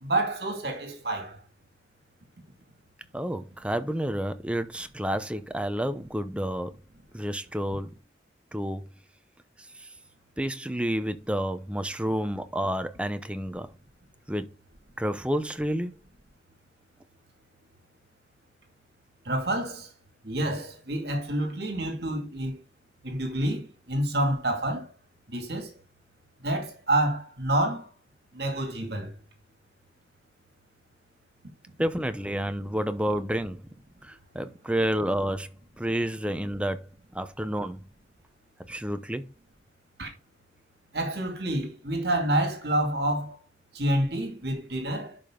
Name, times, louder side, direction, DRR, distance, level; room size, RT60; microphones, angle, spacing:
voice 1, 0.0-1.4 19.2-19.9 20.2-22.6 23.0-24.9 25.3-25.8 26.4-27.9 28.3-29.2 40.0-40.1 40.9-43.4 43.7-45.2, right 1 dB, 60° right, 2.4 m, -28 dB
voice 2, 3.1-6.7 7.1-7.9 8.5-8.8 9.8-9.9 10.4-13.7 14.3-14.5 15.0-15.9 31.8-33.6 34.0-35.5 35.8-36.8 37.1-37.8 38.7-39.2, equal, 5° right, 0.8 m, -29 dB
11.5 x 5.2 x 3.8 m
head